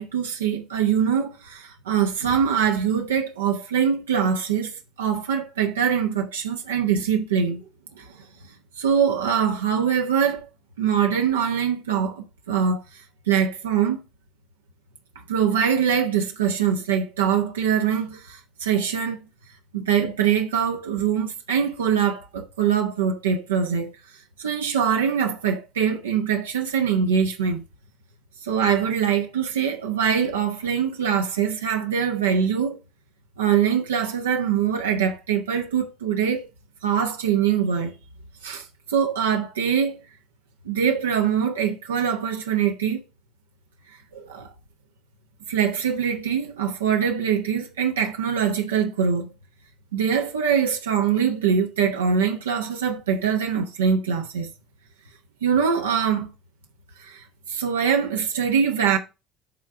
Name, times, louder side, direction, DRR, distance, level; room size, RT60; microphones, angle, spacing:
voice 1, 0.0-7.6 8.0-8.2 8.8-10.5 10.8-12.8 13.3-14.0 15.3-19.2 19.7-23.9 24.4-27.6 28.4-32.8 33.4-36.5 36.8-37.9 38.4-40.0 40.6-43.0 44.1-44.5 45.5-49.3 49.9-54.5 55.4-56.3 57.0-59.0, right 7 dB, 85° right, 1.0 m, -23 dB
8.1 x 3.7 x 4.6 m
hypercardioid pair, 65°, 0 cm